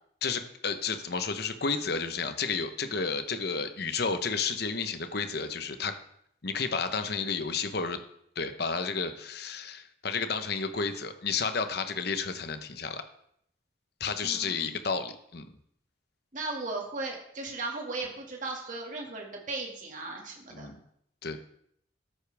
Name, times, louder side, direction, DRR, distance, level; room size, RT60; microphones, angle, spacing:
voice 1, 0.2-5.9 6.4-8.0 8.4-13.0 14.0-15.5 20.5-20.8 21.2-21.4, left 5 dB, 55° left, 8 dB, 1.0 m, -31 dB
voice 2, 14.2-14.8 16.3-20.7, right 3 dB, 45° right, 0 dB, 2.2 m, -37 dB
13.5 x 9.9 x 3.5 m, 0.70 s
head